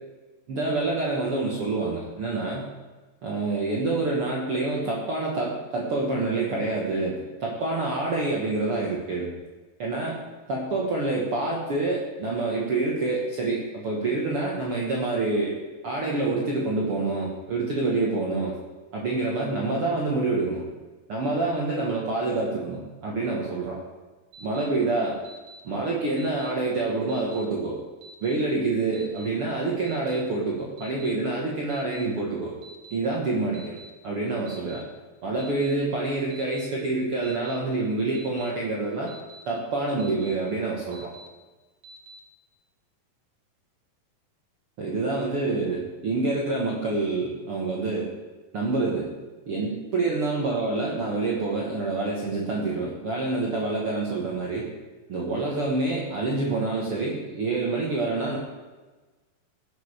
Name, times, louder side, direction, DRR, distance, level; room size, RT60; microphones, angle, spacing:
voice 1, 0.5-2.7 3.2-9.3 9.8-10.2 10.5-15.6 15.8-18.5 18.9-20.6 21.1-23.8 24.4-25.2 25.6-27.8 28.2-32.6 32.9-33.8 34.0-34.8 35.2-39.1 39.4-41.1 44.8-48.1 48.5-49.1 49.5-54.7 55.1-58.4, right 3 dB, 85° right, -3 dB, 1.2 m, -27 dB
Alarm, 24.3-24.7 25.2-25.6 26.2-26.5 27.1-27.4 28.0-28.4 28.9-29.3 29.9-30.2 30.8-31.1 31.7-32.1 32.6-33.0 33.5-33.9 34.5-34.8 35.4-35.7 36.3-36.7 37.2-37.6 38.1-38.5 39.1-39.4 40.0-40.4 40.9-41.3 41.8-42.2, right 1 dB, 60° right, 1.8 m, -47 dB
17.0 x 6.6 x 5.0 m, 1.3 s
omnidirectional pair, 4.9 m